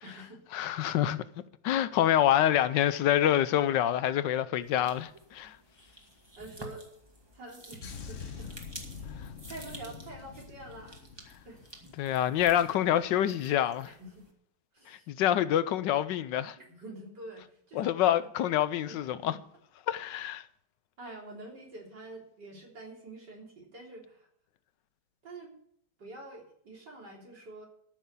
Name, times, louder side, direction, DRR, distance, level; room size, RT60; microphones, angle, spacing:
voice 1, 0.0-0.4 6.4-6.9 7.3-8.6 8.9-11.0 11.4-11.7 13.8-14.3 14.7-15.1 16.6-18.3 18.9-19.4 21.0-24.3 25.2-25.5 26.0-27.6, right 2 dB, 70° right, 4.2 m, -47 dB
voice 2, 0.5-1.2 1.6-5.6 12.0-13.9 14.9-16.6 17.8-19.3 19.9-20.4, left 11 dB, 80° left, 1.3 m, -26 dB
sound 1, 4.6-14.3, right 1 dB, 15° right, 2.0 m, -51 dB
sound 2, 7.8-12.4 12.6-12.9, left 6 dB, 50° left, 1.3 m, -45 dB
13.5 x 6.4 x 8.2 m
omnidirectional pair, 1.9 m